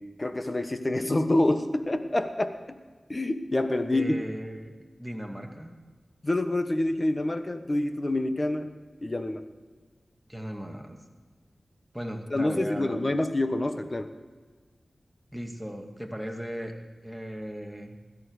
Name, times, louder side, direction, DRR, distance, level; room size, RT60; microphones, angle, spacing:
voice 1, 0.0-2.8 3.1-4.1 6.2-8.7 9.0-9.5 12.3-14.1, left 1 dB, 35° left, 9 dB, 1.2 m, -27 dB
voice 2, 3.9-5.8 10.3-11.0 11.9-13.0 15.3-16.7 17.0-18.0, equal, ahead, 2 dB, 2.4 m, -37 dB
17.0 x 13.5 x 4.9 m, 1.4 s
cardioid pair, 45°, 0 cm